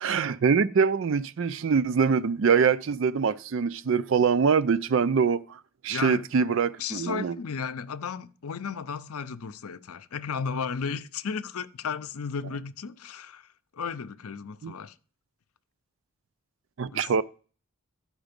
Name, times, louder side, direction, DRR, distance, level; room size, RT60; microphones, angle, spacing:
voice 1, 0.0-7.3 14.6-14.7 16.8-17.2, right 6 dB, 60° right, 0.4 m, -24 dB
voice 2, 5.9-6.3 6.8-15.0 16.9-17.1, left 6 dB, 80° left, 0.6 m, -34 dB
12.0 x 5.1 x 5.2 m
head